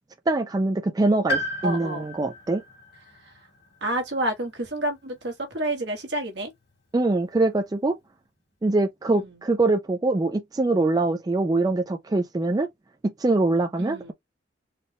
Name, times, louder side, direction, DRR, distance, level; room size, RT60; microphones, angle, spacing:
voice 1, 0.3-2.6 6.9-8.0 8.6-12.7 13.2-14.1, right 2 dB, 20° right, 0.3 m, -23 dB
Piano, 1.3-5.2 5.4-5.5 6.7-6.8, equal, 60° left, 2.2 m, -35 dB
voice 2, 1.6-2.1 3.0-3.5 3.8-6.5 9.1-9.4 13.8-14.1, right 1 dB, 65° right, 1.3 m, -30 dB
4.1 x 2.3 x 3.3 m
head